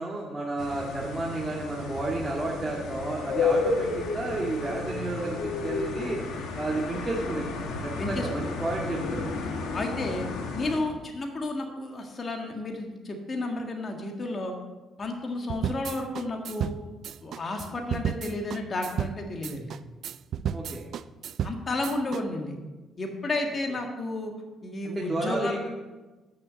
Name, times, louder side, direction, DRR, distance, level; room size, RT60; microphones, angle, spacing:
voice 1, 0.0-5.4 5.6-6.2 6.6-7.5 7.8-9.2 20.5-20.8 24.8-25.7, right 2 dB, 20° right, -4 dB, 2.1 m, -31 dB
sound 1, 0.6-10.8, left 4 dB, 75° left, 1.5 m, -32 dB
voice 2, 8.0-8.5 9.7-10.2 10.5-14.5 15.0-16.7 17.2-19.7 21.4-22.5 23.0-24.3 24.6-25.6, left 2 dB, 40° left, 3 dB, 1.6 m, -32 dB
sound 2, 15.5-22.2, right 8 dB, 65° right, 0.4 m, -33 dB
9.7 x 6.7 x 6.3 m, 1.2 s
cardioid pair, 80°, 0 cm